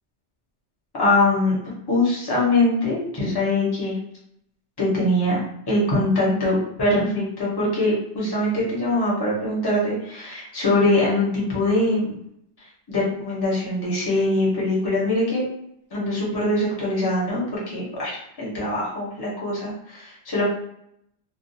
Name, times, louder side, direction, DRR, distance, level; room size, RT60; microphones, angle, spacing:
voice 1, 1.0-1.6 1.9-4.0 4.8-5.4 5.7-12.2 12.6-15.5 15.9-20.4, left 1 dB, 25° left, -6 dB, 0.8 m, -23 dB
2.4 x 2.2 x 2.6 m, 0.76 s
omnidirectional pair, 1.2 m